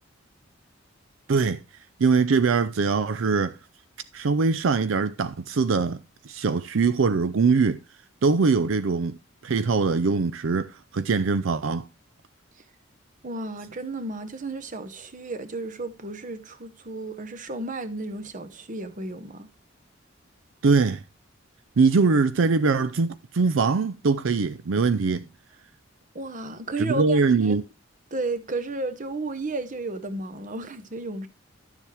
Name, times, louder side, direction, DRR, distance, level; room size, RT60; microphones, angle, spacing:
voice 1, 1.3-1.6 2.0-3.5 4.1-7.8 8.2-9.2 9.4-11.9 20.6-21.0 21.8-25.3 26.8-27.6, right 4 dB, 75° right, 0.5 m, -22 dB
voice 2, 13.2-19.5 26.1-27.6 28.1-31.3, right 2 dB, 40° right, 1.0 m, -33 dB
11.5 x 7.2 x 3.3 m
head